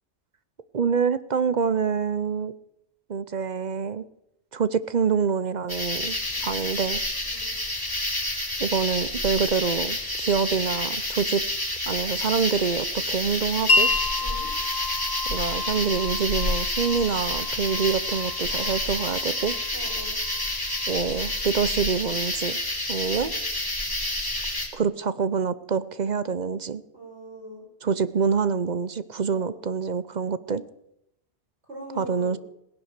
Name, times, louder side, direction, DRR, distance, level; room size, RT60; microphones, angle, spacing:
voice 1, 0.7-2.5 3.1-4.0 4.5-6.2 6.4-7.0 8.6-11.4 11.9-13.9 15.3-19.5 20.9-22.6 22.9-23.3 24.7-26.8 27.8-30.6 32.0-32.4, right 6 dB, 45° right, 15 dB, 0.8 m, -26 dB
sound 1, 5.7-24.7, left 1 dB, 20° left, 3.4 m, -29 dB
Wind chime, 13.7-21.3, left 3 dB, 60° left, 1.2 m, -30 dB
voice 2, 14.2-14.5 19.7-20.2 23.1-23.4 26.9-27.7 29.3-29.6 31.6-32.4, right 1 dB, 70° right, 0 dB, 5.4 m, -41 dB
18.0 x 10.5 x 6.6 m, 0.80 s
omnidirectional pair, 1.2 m